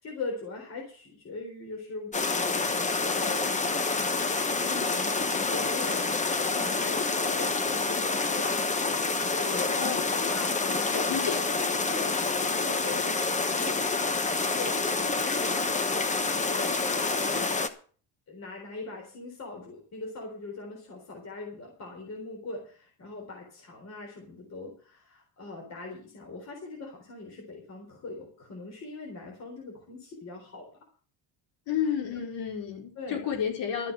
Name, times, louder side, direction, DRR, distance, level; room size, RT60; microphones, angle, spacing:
voice 1, 0.0-6.1 6.4-8.6 9.1-9.7 10.3-11.4 11.9-13.9 14.4-15.8 16.3-17.7 18.3-30.7 31.8-32.2 33.0-33.2, left 3 dB, 35° left, 0 dB, 3.8 m, -41 dB
sound 1, 2.1-17.7, left 3 dB, 15° left, 0.9 m, -28 dB
voice 2, 9.7-10.3 10.9-11.4 31.7-33.9, left 8 dB, 70° left, 3 dB, 4.5 m, -31 dB
13.0 x 7.5 x 7.6 m, 0.41 s
cardioid pair, 175°, 44 cm